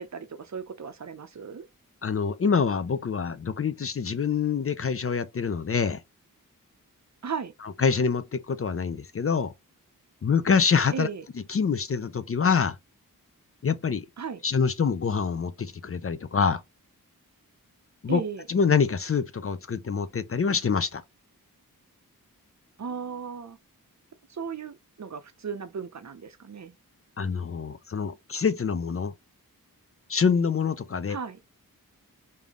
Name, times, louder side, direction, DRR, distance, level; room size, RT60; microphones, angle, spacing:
voice 1, 0.0-1.7 7.2-7.5 10.9-11.2 14.2-14.4 18.1-18.5 22.8-23.6 24.3-26.7 31.1-31.4, right 6 dB, 50° right, 0.6 m, -36 dB
voice 2, 2.0-6.0 7.8-9.5 10.2-11.1 11.5-12.8 13.6-14.1 14.4-16.6 18.0-18.2 18.5-21.0 27.2-29.1 30.1-31.2, left 6 dB, 40° left, 0.4 m, -25 dB
3.5 x 2.7 x 3.6 m
wide cardioid pair, 65°, 35 cm